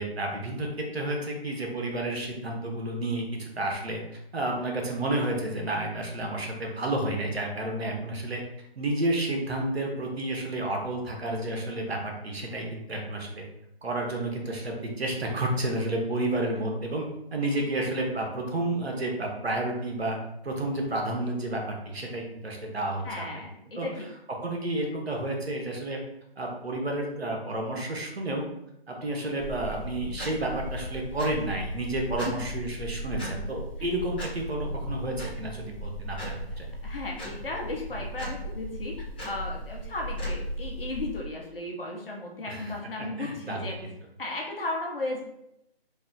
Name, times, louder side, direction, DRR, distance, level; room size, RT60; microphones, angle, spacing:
voice 1, 0.0-4.0 4.3-8.4 8.8-13.4 13.8-17.0 17.3-20.2 20.4-23.2 23.8-23.9 24.4-26.0 26.4-28.5 28.9-36.2 36.6-36.7 42.5-42.7 43.2-43.9, right 1 dB, 80° right, 1 dB, 1.0 m, -31 dB
voice 2, 23.0-24.0 32.3-32.4 33.8-33.9 36.8-38.9 39.2-43.8 44.2-45.2, left 2 dB, 60° left, 0 dB, 1.0 m, -35 dB
sound 1, 29.4-41.2, equal, 10° left, 0.6 m, -36 dB
3.2 x 2.3 x 3.8 m, 0.82 s
figure-of-eight pair, 155°, 31 cm